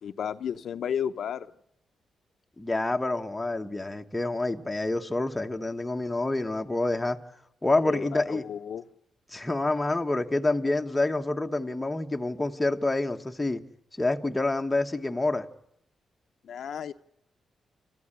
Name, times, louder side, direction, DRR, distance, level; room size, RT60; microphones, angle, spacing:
voice 1, 0.0-1.5 7.8-8.8 16.4-16.9, left 8 dB, 65° left, 0.8 m, -33 dB
voice 2, 2.6-7.2 7.6-8.4 9.3-13.6 14.0-15.5, left 2 dB, 10° left, 1.3 m, -27 dB
29.5 x 15.0 x 9.9 m
wide cardioid pair, 140°, 0 cm